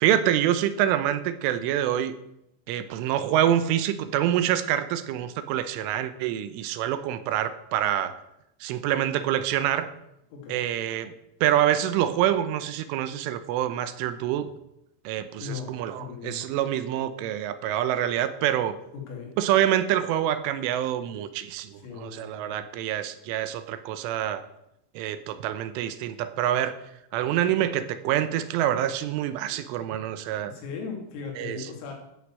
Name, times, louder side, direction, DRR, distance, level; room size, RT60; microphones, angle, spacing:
voice 1, 0.0-2.2 2.7-8.2 8.6-9.9 10.5-11.1 11.4-14.5 15.1-18.8 19.4-24.4 25.0-26.8 27.1-30.5 31.4-31.7, right 11 dB, 80° right, 11 dB, 3.3 m, -26 dB
voice 2, 10.3-10.6 15.4-16.5 18.9-19.3 21.7-22.7 29.5-29.6 30.4-31.9, left 5 dB, 90° left, 1 dB, 5.7 m, -38 dB
13.0 x 9.3 x 7.7 m, 0.82 s
omnidirectional pair, 5.7 m